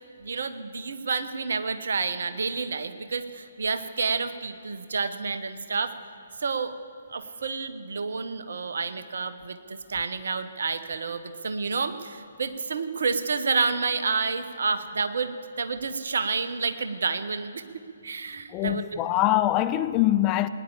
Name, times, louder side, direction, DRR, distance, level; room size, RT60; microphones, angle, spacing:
voice 1, 0.2-5.9 6.4-6.7 7.1-19.0, right 4 dB, 60° right, 1.0 m, -29 dB
voice 2, 18.5-20.5, left 14 dB, 20° left, 0.4 m, -23 dB
19.5 x 10.0 x 7.2 m
figure-of-eight pair, 135°, 0 cm